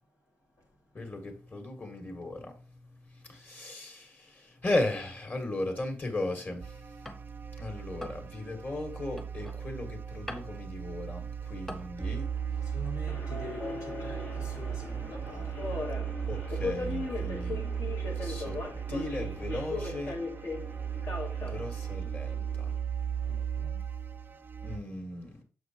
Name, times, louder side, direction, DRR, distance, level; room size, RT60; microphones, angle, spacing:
voice 1, 0.9-12.8 16.3-17.6 18.2-18.6 18.9-20.2 21.4-22.7 24.6-25.4, left 2 dB, 35° left, 1.8 m, -37 dB
sound 1, 4.9-7.5 7.8-11.9, equal, 10° left, 0.9 m, -47 dB
sound 2, 6.6-24.8, right 8 dB, 35° right, 0.4 m, -36 dB
voice 2, 12.6-15.8 23.3-23.9, equal, 90° left, 2.7 m, -46 dB
Subway metro underground, 13.1-22.8, left 3 dB, 60° left, 1.5 m, -39 dB
6.7 x 4.7 x 2.9 m
cardioid pair, 80°, 6 cm